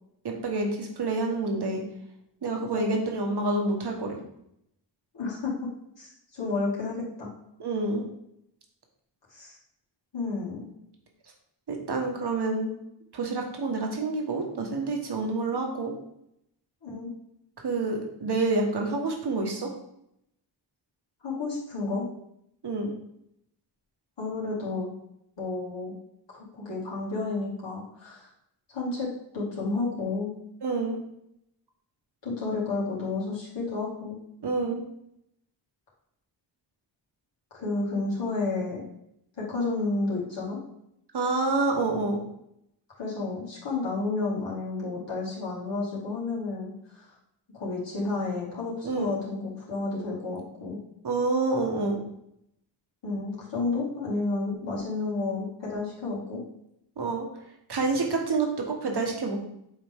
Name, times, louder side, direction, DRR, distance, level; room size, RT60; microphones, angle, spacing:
voice 1, 0.2-1.8 2.4-4.2 7.6-8.0 11.7-12.7 13.1-15.9 17.6-19.7 22.6-22.9 30.6-31.0 34.4-34.8 41.1-42.2 48.8-49.1 51.0-52.0 57.0-57.3 57.7-59.4, right 3 dB, 55° right, 2 dB, 1.5 m, -28 dB
voice 2, 2.7-3.3 5.1-5.5 6.0-7.3 9.3-9.6 10.1-10.7 16.8-17.1 21.2-22.1 24.2-24.9 25.4-25.9 26.3-28.3 28.7-30.3 32.2-34.2 37.5-38.8 39.4-40.6 43.0-46.7 47.5-50.8 53.0-56.4, left 3 dB, 65° left, -6 dB, 2.3 m, -31 dB
6.9 x 3.9 x 3.6 m, 0.77 s
cardioid pair, 65°, 46 cm